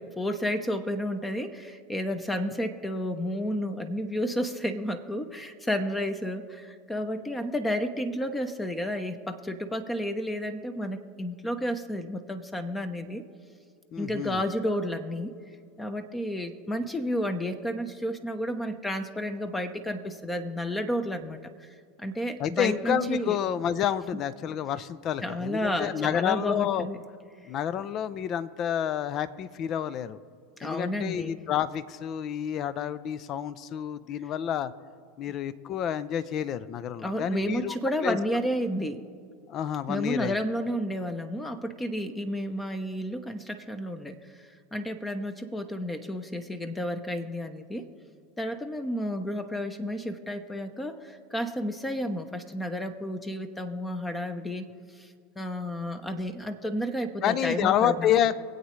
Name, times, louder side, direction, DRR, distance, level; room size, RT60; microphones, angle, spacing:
voice 1, 0.2-13.2 14.0-15.3 15.8-21.7 22.0-23.4 25.2-27.0 30.6-31.4 37.0-39.0 39.9-44.4 44.7-47.9 48.4-54.7 55.0-58.1, equal, 10° left, 9 dB, 0.8 m, -31 dB
voice 2, 13.9-14.4 22.4-26.9 27.5-30.2 30.6-34.7 35.2-37.8 38.0-38.4 39.5-40.4 57.2-58.4, left 9 dB, 45° left, 15 dB, 0.6 m, -29 dB
23.5 x 8.2 x 3.2 m, 2.2 s
hypercardioid pair, 85°, 0 cm